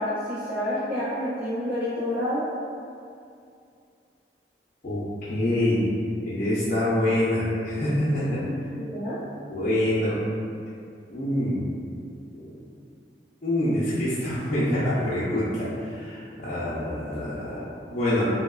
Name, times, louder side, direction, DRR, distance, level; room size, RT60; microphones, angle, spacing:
voice 1, 0.0-2.5 8.4-9.2, left 1 dB, 50° right, -13 dB, 0.6 m, -29 dB
voice 2, 4.8-5.9 6.2-8.4 9.5-10.2 11.1-11.6 12.3-12.5 13.4-18.3, left 1 dB, 45° left, -12 dB, 0.4 m, -26 dB
3.0 x 2.0 x 2.3 m, 2.5 s
head